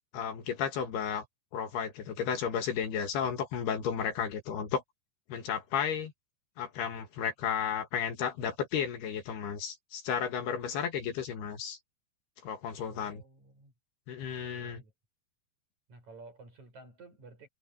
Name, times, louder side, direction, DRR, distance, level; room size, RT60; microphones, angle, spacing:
voice 1, 0.1-1.3 1.5-4.8 5.3-6.1 6.6-11.8 12.4-13.2 14.1-14.8, left 7 dB, 70° left, 3.6 m, -33 dB
voice 2, 12.9-13.7 14.5-14.9 15.9-17.5, right 3 dB, 40° right, 8.0 m, -53 dB
omnidirectional pair, 5.1 m